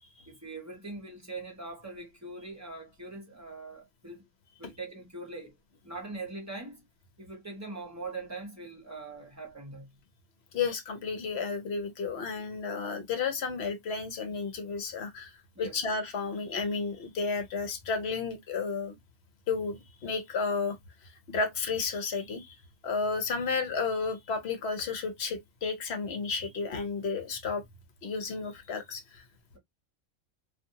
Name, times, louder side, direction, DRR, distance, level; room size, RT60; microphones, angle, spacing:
voice 1, 0.3-4.2 4.6-5.6 5.8-6.9 7.2-9.9 15.5-15.8, right 3 dB, 15° right, 0.9 m, -42 dB
voice 2, 10.5-15.3 15.6-19.0 19.5-20.8 21.3-22.6 22.8-27.6 28.0-29.2, left 4 dB, 60° left, 0.9 m, -32 dB
2.5 x 2.5 x 2.7 m
omnidirectional pair, 1.3 m